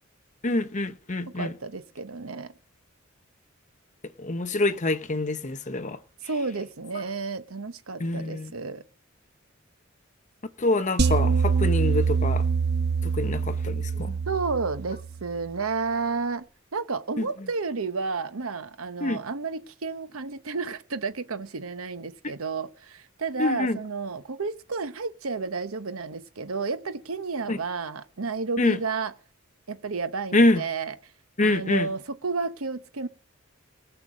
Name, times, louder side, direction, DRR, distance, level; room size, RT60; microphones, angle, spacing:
voice 1, 0.4-1.5 4.2-6.0 8.0-8.5 10.6-12.4 13.0-14.2 19.0-19.2 23.4-23.8 27.5-27.6 28.6-28.8 30.3-30.6 31.4-31.9, left 2 dB, 35° left, 0.8 m, -25 dB
voice 2, 1.3-2.5 6.2-8.8 14.3-16.4 16.7-29.1 29.7-30.9 31.4-33.1, right 4 dB, 85° right, 1.0 m, -31 dB
sound 1, 11.0-15.3, right 5 dB, 50° right, 0.9 m, -25 dB
19.0 x 6.7 x 6.4 m
head